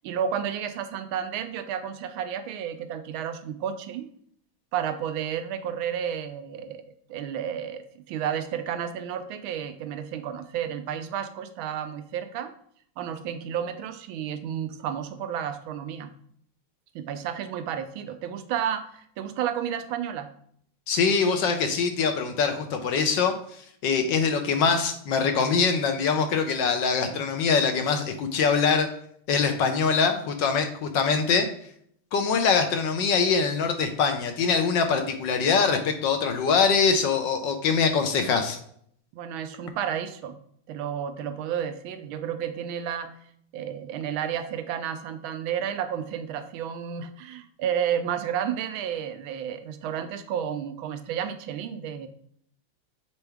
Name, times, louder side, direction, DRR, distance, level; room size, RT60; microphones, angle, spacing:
voice 1, 0.0-4.1 4.7-6.8 7.1-12.5 13.0-16.1 16.9-20.3 24.0-24.1 27.1-27.2 39.1-40.4 40.7-43.2 43.5-52.1, right 9 dB, 80° right, 9 dB, 1.4 m, -31 dB
voice 2, 20.9-23.3 23.8-28.9 29.3-31.5 32.1-38.6, left 5 dB, 65° left, 6 dB, 1.3 m, -23 dB
7.0 x 4.4 x 3.4 m, 0.65 s
omnidirectional pair, 2.3 m